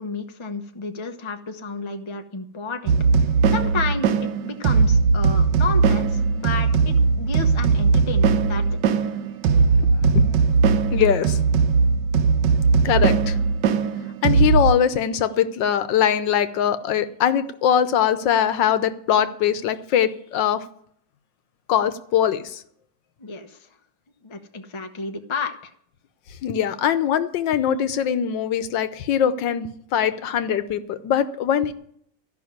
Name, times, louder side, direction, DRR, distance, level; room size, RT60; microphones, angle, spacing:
voice 1, 0.0-2.9 3.2-8.6 23.2-23.7 24.2-25.7, left 4 dB, 25° left, 0.7 m, -31 dB
sound 1, 2.9-14.7, right 5 dB, 80° right, 1.4 m, -19 dB
voice 2, 9.8-10.2 10.9-11.4 12.8-13.4 14.2-20.6 21.7-22.6 26.4-31.7, left 9 dB, 90° left, 1.5 m, -22 dB
13.5 x 5.9 x 9.3 m
omnidirectional pair, 1.9 m